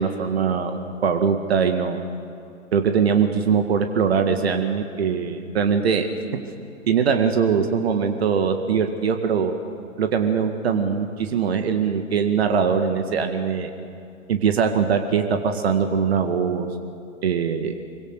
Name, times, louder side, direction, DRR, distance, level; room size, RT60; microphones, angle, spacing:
voice 1, 0.0-2.0 2.7-6.1 6.9-9.5 10.0-13.7 14.3-16.7 17.2-17.8, right 6 dB, 50° right, 6 dB, 2.0 m, -22 dB
26.0 x 23.5 x 6.8 m, 2.5 s
figure-of-eight pair, 120°, 40 cm